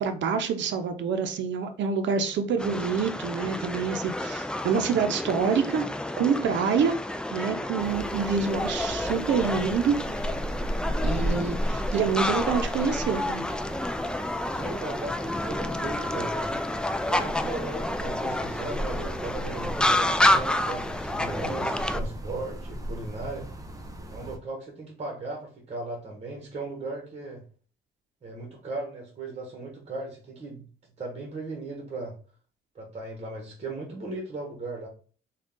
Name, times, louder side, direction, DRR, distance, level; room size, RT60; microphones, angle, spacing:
voice 1, 0.0-5.9 6.2-7.0 7.3-10.0 11.0-13.5, right 6 dB, 65° right, 7 dB, 0.6 m, -27 dB
sound 1, 2.6-22.0, left 1 dB, 5° left, 0.3 m, -29 dB
sound 2, 7.8-24.4, right 1 dB, 15° right, 0.7 m, -36 dB
voice 2, 14.5-16.5 17.1-23.5 24.1-27.4 28.2-30.6 31.0-32.1 32.7-34.9, right 2 dB, 35° right, 0 dB, 1.2 m, -37 dB
3.7 x 2.4 x 3.6 m, 0.40 s
cardioid pair, 90°, 20 cm